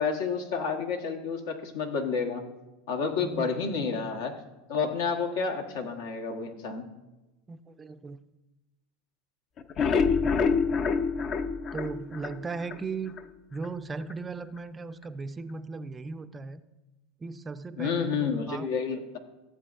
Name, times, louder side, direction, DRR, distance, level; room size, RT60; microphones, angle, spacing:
voice 1, 0.0-2.4 2.9-4.4 4.7-6.9 17.8-19.2, left 5 dB, 75° left, 4 dB, 1.2 m, -30 dB
voice 2, 7.5-8.2 11.7-13.2 13.5-16.6 17.2-18.7, right 4 dB, 20° right, 12 dB, 0.4 m, -37 dB
sound 1, 9.6-12.8 13.2-13.3 13.6-13.7 14.1-14.2, left 5 dB, 40° left, 0.5 m, -26 dB
15.0 x 7.5 x 2.5 m, 1.1 s
hypercardioid pair, 105°, 0 cm